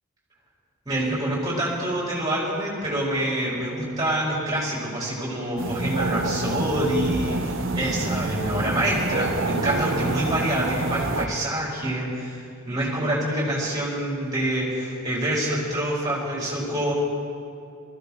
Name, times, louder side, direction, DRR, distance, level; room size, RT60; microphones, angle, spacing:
voice 1, 0.8-16.9, right 1 dB, 20° right, -5 dB, 4.5 m, -26 dB
sound 1, 5.6-11.3, right 2 dB, 65° right, 1.0 m, -27 dB
20.0 x 15.5 x 4.4 m, 2.5 s
head